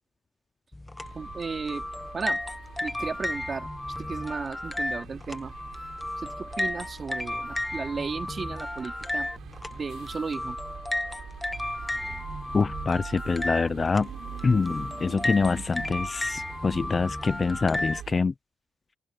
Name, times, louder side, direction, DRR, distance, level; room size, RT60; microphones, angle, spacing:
sound 1, 0.7-18.0, left 1 dB, 10° left, 1.4 m, -34 dB
sound 2, 1.0-18.2, right 10 dB, 75° right, 5.2 m, -45 dB
voice 1, 1.1-1.9 2.1-2.4 2.8-3.7 4.0-5.5 6.2-9.3 9.7-10.6, right 5 dB, 35° right, 4.1 m, -34 dB
voice 2, 12.5-14.1 14.4-18.3, left 4 dB, 30° left, 0.7 m, -25 dB
open air
cardioid pair, 90°, 0 cm